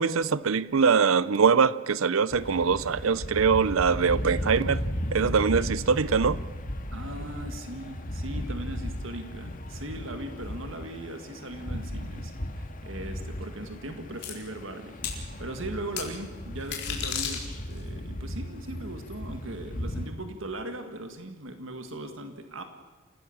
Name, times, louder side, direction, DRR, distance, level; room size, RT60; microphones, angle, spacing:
voice 1, 0.0-4.8 5.1-6.4, right 5 dB, 85° right, 0.6 m, -23 dB
sound 1, 2.3-20.1, equal, 45° left, 1.9 m, -36 dB
voice 2, 6.9-22.6, right 1 dB, 70° right, 1.8 m, -39 dB
sound 2, 14.2-14.3 15.0-15.2 16.0-16.1 16.6-17.8, left 8 dB, 60° left, 4.1 m, -32 dB
28.0 x 16.5 x 7.2 m
head